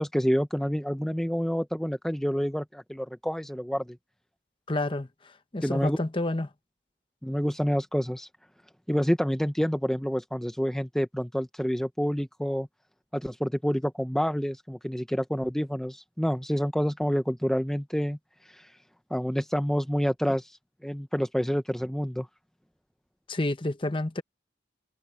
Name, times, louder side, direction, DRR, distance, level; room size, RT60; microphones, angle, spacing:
voice 1, 0.0-4.0 5.6-6.0 7.2-8.3 8.9-12.7 13.1-18.2 18.5-18.7 19.1-20.6 20.8-22.3, equal, 5° left, 0.6 m, -28 dB
voice 2, 4.7-5.1 5.5-6.5 23.3-24.2, left 2 dB, 25° left, 0.8 m, -29 dB
head